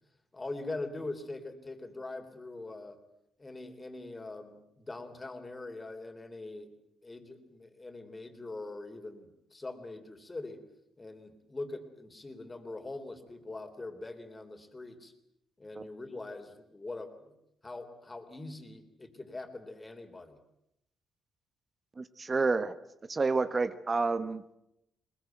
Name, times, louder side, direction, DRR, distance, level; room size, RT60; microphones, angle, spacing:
voice 1, 0.3-3.0 3.4-6.7 7.0-10.6 11.0-15.1 15.6-17.3 17.6-20.4, left 2 dB, 20° left, 7 dB, 3.5 m, -42 dB
voice 2, 22.0-22.7 23.1-24.6, right 3 dB, 30° right, 12 dB, 1.1 m, -29 dB
21.0 x 21.0 x 9.2 m, 0.84 s
cardioid pair, 90°, 0 cm